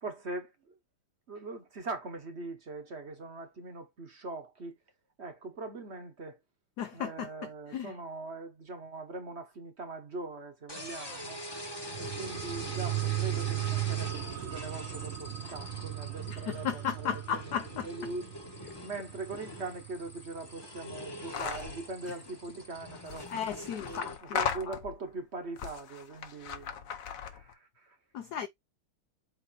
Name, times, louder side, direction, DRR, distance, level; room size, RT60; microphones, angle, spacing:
voice 1, 0.0-0.8 1.3-4.8 5.2-6.4 6.9-11.4 12.0-18.3 18.8-23.3 23.8-28.0, right 3 dB, 40° right, 1.2 m, -41 dB
voice 2, 6.8-7.3 7.7-7.9 16.3-18.1 22.1-22.2 23.3-24.4 24.7-24.8 28.1-28.5, left 8 dB, 85° left, 0.8 m, -35 dB
sound 1, 10.7-24.2, left 1 dB, 15° left, 0.9 m, -44 dB
sound 2, 11.8-21.0 21.3-21.4, right 17 dB, 80° right, 1.6 m, -37 dB
sound 3, 21.3-21.8 22.9-25.1 25.6-27.5, left 7 dB, 55° left, 1.0 m, -37 dB
7.8 x 2.9 x 4.2 m
omnidirectional pair, 2.4 m